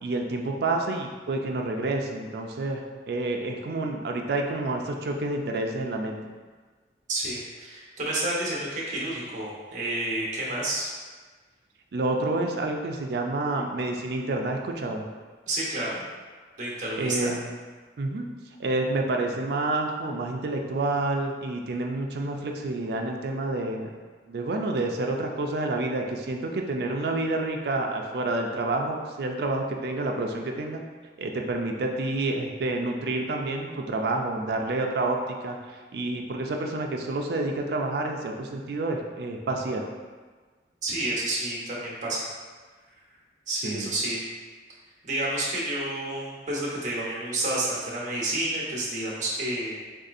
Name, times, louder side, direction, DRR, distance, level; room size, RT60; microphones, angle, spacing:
voice 1, 0.0-6.2 11.9-15.1 17.0-17.4 18.0-18.3 18.6-23.9 24.3-30.8 31.2-39.9 43.6-43.9, right 2 dB, 60° right, 2 dB, 0.4 m, -29 dB
voice 2, 7.1-10.9 15.5-16.0 16.6-17.3 40.8-42.3 43.5-44.2 45.0-49.8, right 1 dB, 40° right, -5 dB, 0.8 m, -30 dB
3.9 x 2.7 x 2.5 m, 1.4 s
head